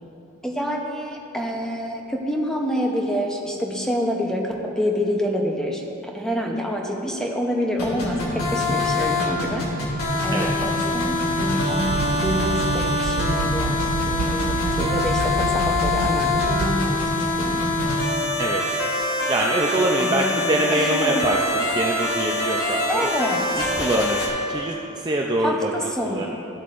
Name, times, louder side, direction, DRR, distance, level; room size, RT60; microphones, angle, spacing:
voice 1, 0.4-10.0 10.2-13.8 14.0-17.1 17.4-17.7 20.0-20.4 20.7-21.3 22.9-24.1 25.4-26.3, equal, 5° left, 0 dB, 0.8 m, -27 dB
sound 1, 7.8-24.3, left 2 dB, 90° left, 2.0 m, -24 dB
sound 2, 11.8-16.8, right 6 dB, 80° right, 0.3 m, -29 dB
voice 2, 19.3-22.9 23.6-24.2 24.5-26.3, right 1 dB, 20° right, -1 dB, 0.4 m, -24 dB
13.5 x 8.0 x 2.5 m, 2.8 s
head